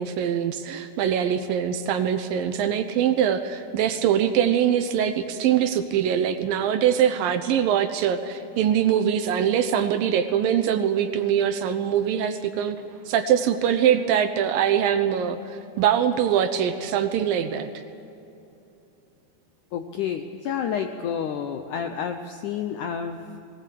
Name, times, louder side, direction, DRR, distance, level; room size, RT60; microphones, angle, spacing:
voice 1, 0.0-15.4 15.8-17.8, right 9 dB, 75° right, 9 dB, 2.3 m, -23 dB
voice 2, 19.7-23.4, left 8 dB, 80° left, 6 dB, 1.8 m, -30 dB
19.0 x 19.0 x 8.5 m, 2.9 s
omnidirectional pair, 4.6 m